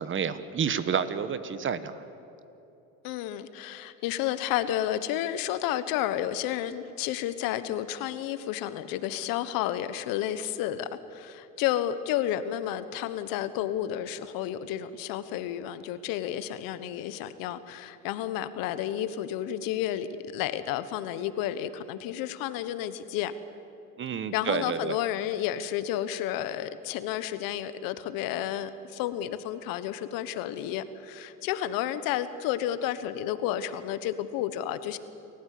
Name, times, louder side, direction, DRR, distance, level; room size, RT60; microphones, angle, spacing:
voice 1, 0.0-2.0 24.0-25.0, right 7 dB, 35° right, 13 dB, 1.2 m, -29 dB
voice 2, 3.0-20.1 20.3-23.3 24.3-35.0, left 11 dB, 70° left, 13 dB, 1.3 m, -31 dB
28.5 x 14.5 x 8.5 m, 3.0 s
supercardioid pair, 105°, 35 cm